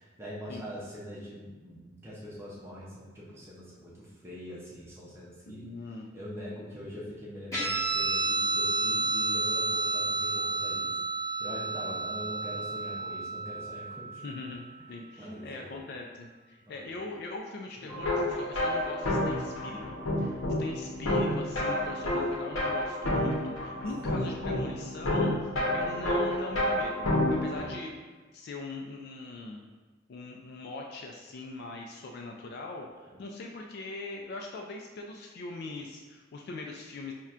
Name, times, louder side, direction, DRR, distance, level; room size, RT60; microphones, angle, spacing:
voice 1, 0.0-5.7 6.1-11.0 11.4-14.2 15.2-15.8 16.7-17.0 17.8-17.9 33.1-33.2, equal, 15° right, -6 dB, 0.5 m, -43 dB
voice 2, 5.5-6.1 14.2-27.1 27.4-27.9 28.3-29.6 30.1-37.1, left 3 dB, 55° left, 1 dB, 0.3 m, -41 dB
Guitar, 7.5-14.4, right 2 dB, 15° left, 1.3 m, -31 dB
sound 1, 17.9-27.7, left 1 dB, 80° left, 0.8 m, -29 dB
5.6 x 2.2 x 2.4 m, 1.3 s
head